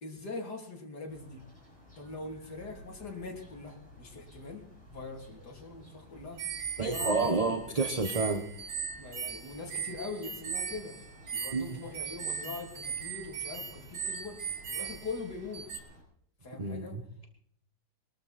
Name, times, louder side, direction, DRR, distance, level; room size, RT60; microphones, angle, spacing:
voice 1, 0.0-1.4 2.0-4.6 4.9-6.4 6.8-7.3 9.0-11.0 11.3-14.4 14.7-15.7 16.4-17.0, left 3 dB, 50° left, 1 dB, 3.8 m, -42 dB
sound 1, 1.1-16.0, left 1 dB, 15° left, 6.2 m, -55 dB
sound 2, 6.4-15.8, right 6 dB, 80° right, 2.7 m, -38 dB
voice 2, 6.8-8.4 11.5-11.8 16.6-17.3, right 3 dB, 25° right, 5 dB, 1.0 m, -30 dB
21.5 x 13.0 x 4.4 m, 0.67 s
omnidirectional pair, 2.2 m